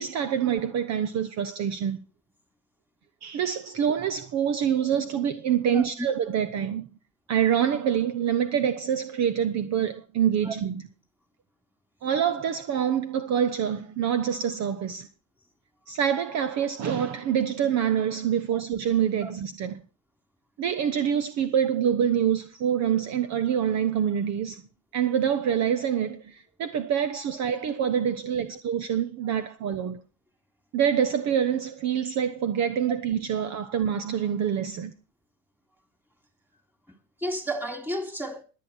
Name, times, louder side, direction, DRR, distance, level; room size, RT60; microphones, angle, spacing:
voice 1, 0.0-2.0 3.2-6.9 7.3-10.7 12.0-15.1 15.9-19.8 20.6-24.6 24.9-30.0 30.7-34.9, right 8 dB, 40° right, 1.1 m, -26 dB
voice 2, 37.2-38.4, right 1 dB, 5° right, 3.2 m, -31 dB
21.0 x 8.5 x 4.5 m
hypercardioid pair, 100°, 41 cm